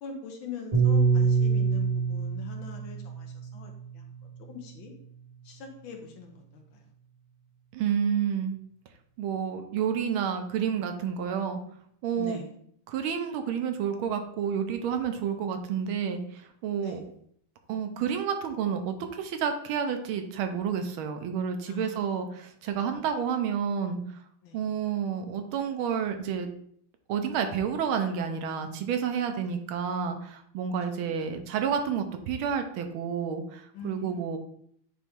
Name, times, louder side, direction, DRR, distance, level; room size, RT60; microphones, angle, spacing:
voice 1, 0.0-4.0 4.4-4.9 5.5-6.8 12.2-12.5 16.8-17.0 21.7-22.2 24.4-24.6 29.4-29.5 31.0-31.1 33.7-34.3, left 5 dB, 70° left, 3 dB, 1.7 m, -42 dB
Piano, 0.7-5.2, right 5 dB, 55° right, 3.2 m, -26 dB
voice 2, 7.7-8.6 9.2-11.6 12.0-12.4 12.9-17.0 17.7-24.0 24.5-26.5 27.1-34.4, right 7 dB, 80° right, 6 dB, 1.5 m, -30 dB
8.6 x 3.0 x 3.6 m, 0.66 s
omnidirectional pair, 2.3 m